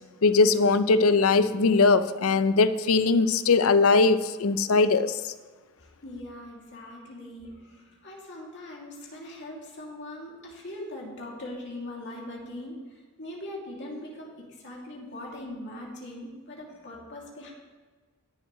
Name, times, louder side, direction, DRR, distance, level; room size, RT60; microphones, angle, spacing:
voice 1, 0.2-5.3, left 4 dB, 70° left, 13 dB, 0.5 m, -21 dB
voice 2, 5.8-17.5, left 1 dB, 55° left, -2 dB, 2.5 m, -41 dB
18.5 x 7.1 x 3.1 m, 1.4 s
head